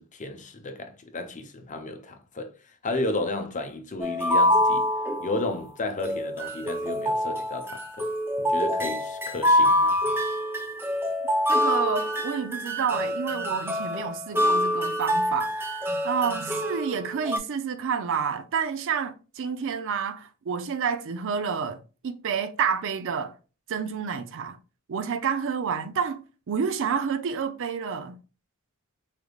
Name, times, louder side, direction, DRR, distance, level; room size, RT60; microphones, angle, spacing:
voice 1, 0.0-2.5 2.8-4.9 5.2-8.1 8.4-10.0, left 2 dB, 35° left, 0.6 m, -33 dB
sound 1, 4.0-5.6 6.0-17.4, left 1 dB, 10° right, 0.5 m, -26 dB
voice 2, 11.5-15.7 16.0-23.3 23.7-24.6 24.9-28.2, right 6 dB, 60° right, 0.5 m, -29 dB
4.8 x 3.3 x 2.3 m
head